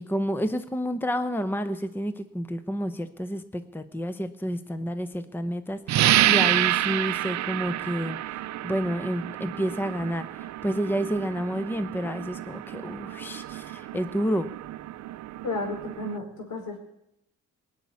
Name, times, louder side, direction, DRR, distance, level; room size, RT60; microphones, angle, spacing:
voice 1, 0.0-8.2 8.6-14.5, equal, 5° left, 11 dB, 0.9 m, -30 dB
sound 1, 5.9-16.2, right 14 dB, 65° right, 0.6 m, -28 dB
voice 2, 15.4-16.8, left 3 dB, 75° left, 3 dB, 4.6 m, -32 dB
19.5 x 7.3 x 9.7 m, 0.80 s
cardioid pair, 90°, 30 cm